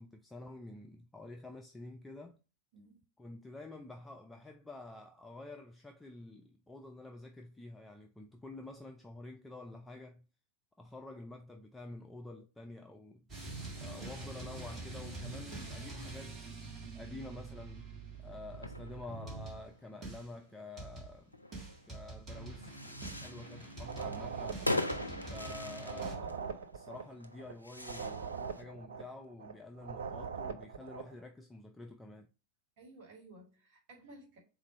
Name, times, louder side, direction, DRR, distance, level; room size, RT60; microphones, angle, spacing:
voice 1, 0.0-2.4 3.2-10.2 10.8-13.3 13.8-16.4 16.9-17.9 18.2-21.4 21.9-24.6 25.3-32.3, left 2 dB, 10° left, 0.4 m, -49 dB
sound 1, 13.3-19.7 20.0-20.3 20.8-21.2 21.5-26.2, right 3 dB, 25° right, 1.6 m, -45 dB
sound 2, 18.5-28.6, left 1 dB, 85° left, 0.4 m, -41 dB
sound 3, 23.8-31.1, right 6 dB, 65° right, 0.4 m, -42 dB
voice 2, 25.0-25.4 32.8-34.4, right 1 dB, 45° right, 1.8 m, -56 dB
4.1 x 2.5 x 4.2 m
figure-of-eight pair, 90°, 0 cm